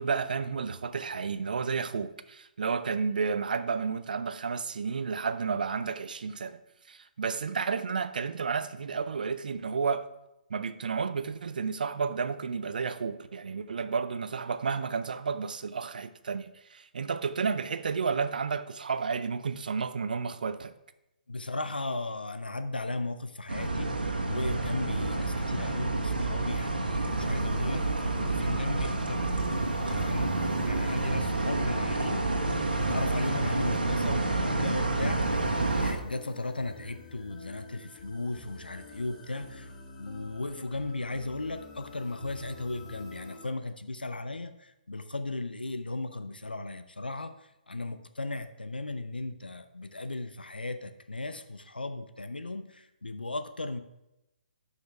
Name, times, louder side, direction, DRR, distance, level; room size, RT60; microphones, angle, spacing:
voice 1, 0.0-6.6 6.9-10.1 10.5-20.7, right 5 dB, 65° right, 0.6 m, -31 dB
voice 2, 21.3-23.9 24.3-32.3 32.8-35.4 35.8-39.7 40.0-53.8, left 2 dB, 90° left, 0.6 m, -36 dB
sound 1, 23.5-35.9, right 2 dB, 85° right, 1.6 m, -29 dB
sound 2, 26.9-43.5, left 4 dB, 40° left, 1.7 m, -50 dB
11.5 x 5.7 x 3.3 m
figure-of-eight pair, 135°, 5 cm